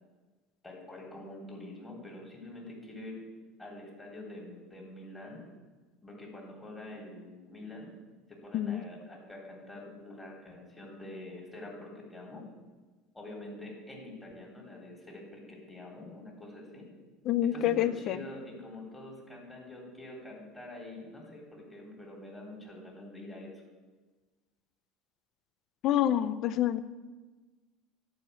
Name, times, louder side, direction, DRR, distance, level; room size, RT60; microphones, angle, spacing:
voice 1, 0.6-3.2 3.6-5.4 6.0-7.9 8.3-12.4 13.1-16.9 17.4-23.5, left 1 dB, 15° left, -2 dB, 3.7 m, -46 dB
voice 2, 17.3-18.2 25.8-26.8, left 11 dB, 55° left, 15 dB, 0.5 m, -27 dB
10.5 x 5.1 x 8.2 m, 1.3 s
supercardioid pair, 105°, 0 cm